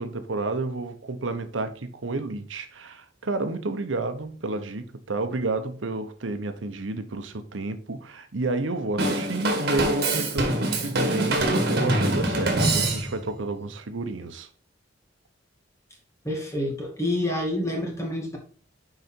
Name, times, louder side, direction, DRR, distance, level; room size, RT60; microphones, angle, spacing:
voice 1, 0.0-14.5, right 2 dB, 85° right, 0.8 m, -30 dB
Drum kit / Drum, 9.0-13.3, right 1 dB, 55° right, 1.7 m, -24 dB
voice 2, 16.2-18.4, left 1 dB, 15° left, 2.0 m, -28 dB
6.6 x 4.9 x 4.4 m
head